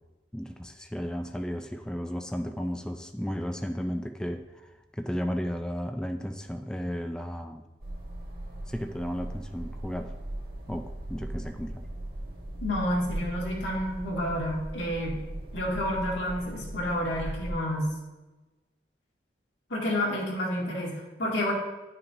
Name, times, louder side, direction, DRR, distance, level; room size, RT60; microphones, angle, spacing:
voice 1, 0.3-4.4 5.0-7.6 8.7-10.1 10.7-11.8, equal, 5° left, 5 dB, 0.3 m, -34 dB
sound 1, 7.8-17.5, right 1 dB, 55° right, 1.9 m, -38 dB
voice 2, 12.6-15.2 15.5-17.9 19.7-21.5, left 1 dB, 90° left, -3 dB, 2.2 m, -29 dB
10.5 x 5.7 x 2.7 m, 1.1 s
head